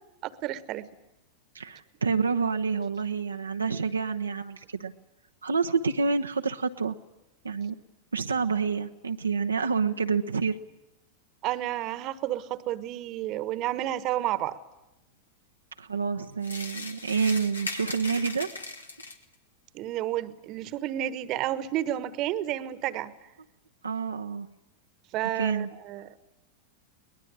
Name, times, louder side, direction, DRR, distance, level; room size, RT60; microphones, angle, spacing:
voice 1, 0.2-0.9 11.4-14.6 19.7-23.1 25.1-26.1, right 13 dB, 40° right, 16 dB, 1.3 m, -31 dB
voice 2, 1.5-4.9 5.4-6.9 7.4-7.8 8.1-10.6 15.8-18.5 23.8-24.5 25.3-25.7, right 5 dB, 75° right, 5 dB, 0.9 m, -28 dB
sound 1, 16.4-19.3, left 3 dB, 80° left, 2.1 m, -38 dB
22.5 x 20.0 x 9.9 m, 0.96 s
figure-of-eight pair, 90°, 0 cm